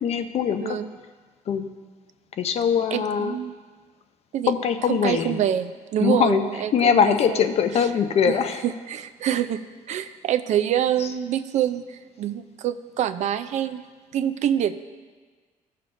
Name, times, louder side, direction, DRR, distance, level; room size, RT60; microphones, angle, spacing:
voice 1, 0.0-0.8 1.5-1.7 2.4-3.3 4.5-5.4 6.0-6.4 6.7-8.6, left 7 dB, 50° left, 8 dB, 0.6 m, -22 dB
voice 2, 2.9-3.5 4.3-4.5 4.9-7.5 8.3-8.4 8.6-9.6 9.9-13.8 14.1-14.7, right 10 dB, 55° right, 12 dB, 0.4 m, -26 dB
15.0 x 6.6 x 2.6 m, 1.5 s
cardioid pair, 145°, 14 cm